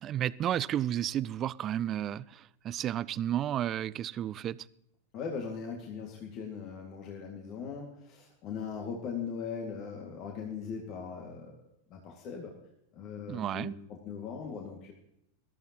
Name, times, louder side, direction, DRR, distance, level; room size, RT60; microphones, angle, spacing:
voice 1, 0.0-4.6 13.3-13.7, right 11 dB, 30° right, 0.4 m, -32 dB
voice 2, 5.1-11.5 11.9-12.5 12.9-14.9, left 6 dB, 40° left, 2.2 m, -39 dB
21.0 x 14.0 x 3.0 m
figure-of-eight pair, 90°, 0 cm